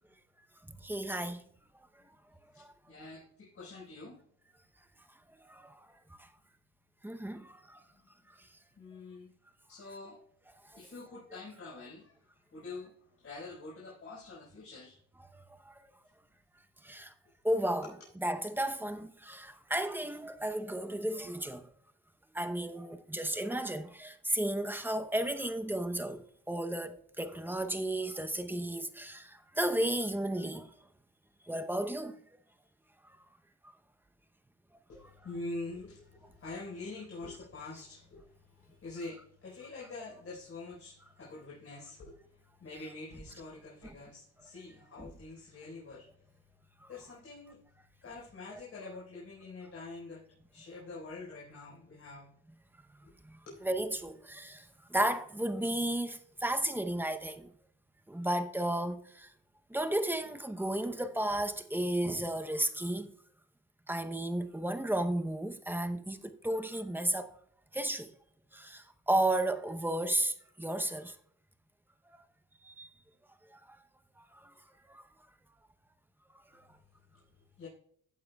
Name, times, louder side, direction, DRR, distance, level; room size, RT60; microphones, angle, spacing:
voice 1, 0.7-1.4 2.6-2.7 5.4-5.9 7.0-7.8 15.6-15.9 16.8-17.1 17.4-17.9 18.2-21.7 22.3-26.2 26.5-30.7 31.5-32.2 45.0-45.1 46.8-46.9 53.2-57.5 58.1-59.3 59.7-63.1 63.9-67.3 67.7-68.1 68.5-71.1 72.6-72.9 73.5-73.6 74.2-74.5 74.9-75.0 76.5-76.6, right 1 dB, 5° right, 0.8 m, -33 dB
voice 2, 2.5-4.2 8.8-9.3 9.7-10.2 10.7-15.0 34.9-46.2 46.9-47.6 48.0-52.3 53.4-53.6 77.1-77.7, left 3 dB, 50° left, 4.5 m, -46 dB
15.5 x 9.2 x 2.3 m
cardioid pair, 90°, 30 cm